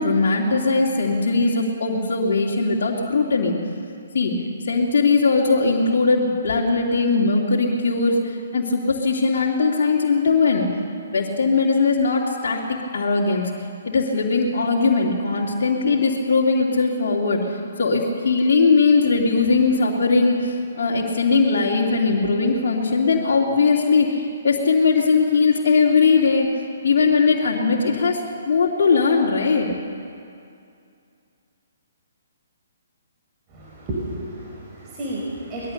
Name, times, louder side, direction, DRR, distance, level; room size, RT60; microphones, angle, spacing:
voice 1, 0.0-3.5 4.1-10.7 11.1-12.6 12.9-13.5 13.8-26.5 26.8-29.7, left 4 dB, 55° left, -3 dB, 2.9 m, -20 dB
voice 2, 33.5-35.7, right 1 dB, 25° right, -5 dB, 5.3 m, -31 dB
24.0 x 20.0 x 6.8 m, 2.4 s
figure-of-eight pair, 130°, 0 cm